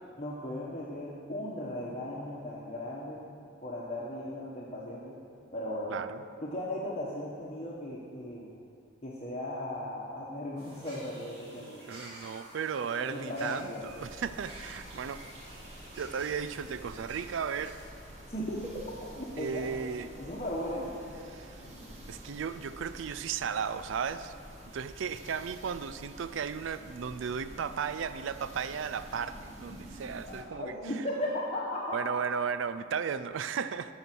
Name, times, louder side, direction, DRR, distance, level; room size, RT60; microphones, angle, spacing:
voice 1, 0.2-3.2 3.6-5.2 5.5-6.0 6.4-8.5 9.0-12.0 13.0-14.0 18.3-18.8 19.2-19.7 20.2-21.0 30.2-32.2, left 1 dB, 35° left, -5 dB, 1.2 m, -37 dB
sound 1, 10.6-17.9, right 1 dB, 55° right, 3.0 m, -51 dB
voice 2, 11.6-15.2 15.9-17.8 19.4-20.1 21.3-21.6 22.1-24.3 24.7-31.0 31.9-33.9, right 6 dB, 75° right, 12 dB, 0.4 m, -35 dB
sound 2, 13.5-30.4, equal, 35° right, 1.4 m, -49 dB
13.5 x 5.7 x 6.2 m, 2.3 s
head